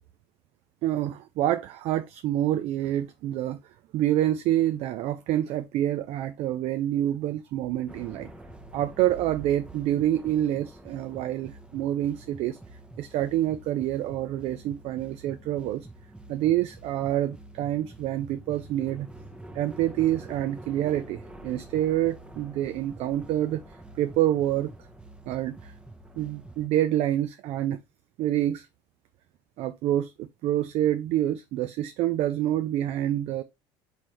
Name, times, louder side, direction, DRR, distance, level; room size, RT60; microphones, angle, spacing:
voice 1, 0.8-3.6 3.9-8.3 8.7-12.6 13.0-15.9 16.3-19.1 19.5-23.6 24.0-24.7 25.3-25.7 26.2-27.8 28.2-28.7 29.6-33.4, right 12 dB, 60° right, 0.4 m, -27 dB
sound 1, 7.9-26.7, right 1 dB, 10° right, 0.9 m, -47 dB
4.5 x 3.7 x 3.1 m
hypercardioid pair, 70°, 12 cm